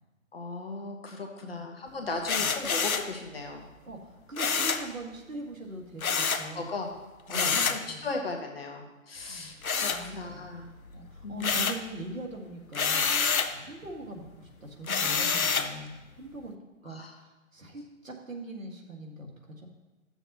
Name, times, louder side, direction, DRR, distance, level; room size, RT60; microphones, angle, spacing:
voice 1, 0.3-3.6 6.3-6.9 7.3-10.7 11.2-11.7 16.9-17.1, left 3 dB, 45° left, 2 dB, 1.3 m, -37 dB
sound 1, 2.2-3.1 4.4-4.9 6.0-6.5 7.3-7.8 9.6-10.5 10.9-11.9 12.7-13.6 14.9-15.7, left 5 dB, 85° left, 0.8 m, -27 dB
voice 2, 4.3-6.7 7.3-8.1 9.3-9.6 9.9-10.5 10.9-16.5 16.8-19.7, right 1 dB, 70° right, 1 dB, 1.9 m, -42 dB
12.5 x 7.0 x 2.9 m, 1.1 s
figure-of-eight pair, 160°, 41 cm